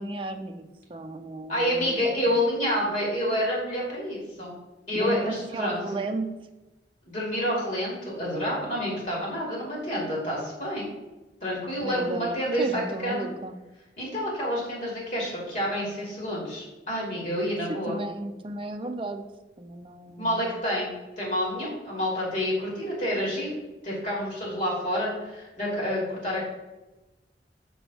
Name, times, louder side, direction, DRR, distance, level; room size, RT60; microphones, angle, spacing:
voice 1, 0.0-2.0 4.9-6.3 11.8-12.3 12.6-13.6 17.9-19.2 19.6-20.5, right 2 dB, 30° right, 5 dB, 0.5 m, -34 dB
voice 2, 1.5-4.5 4.9-5.8 7.1-10.9 11.4-13.3 14.0-18.0 20.2-23.6 23.8-26.4, equal, 45° left, -4 dB, 2.4 m, -28 dB
6.0 x 3.5 x 5.9 m, 1.1 s
head